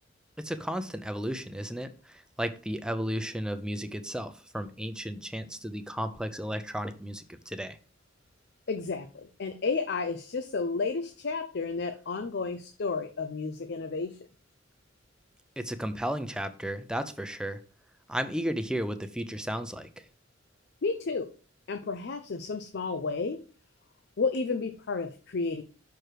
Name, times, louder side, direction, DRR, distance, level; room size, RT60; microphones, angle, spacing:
voice 1, 0.4-7.8 15.6-17.6 18.1-20.0, equal, 5° right, 9 dB, 0.5 m, -34 dB
voice 2, 8.7-14.2 20.8-21.3 21.7-23.4 24.2-25.6, left 4 dB, 60° left, 8 dB, 0.6 m, -32 dB
6.1 x 4.7 x 4.9 m, 0.37 s
head